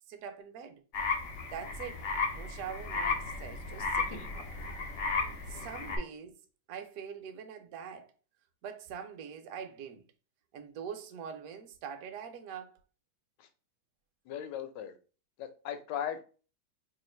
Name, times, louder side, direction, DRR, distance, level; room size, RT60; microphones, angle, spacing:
voice 1, 0.1-0.8 1.5-2.1 2.3-4.5 5.5-6.3 6.7-8.1 8.6-10.0 10.5-12.8, right 7 dB, 65° right, 0.9 m, -43 dB
sound 1, 0.9-6.0, left 4 dB, 55° left, 0.8 m, -34 dB
voice 2, 14.3-15.0 15.4-16.2, left 9 dB, 80° left, 1.2 m, -38 dB
3.1 x 2.4 x 4.3 m
omnidirectional pair, 1.9 m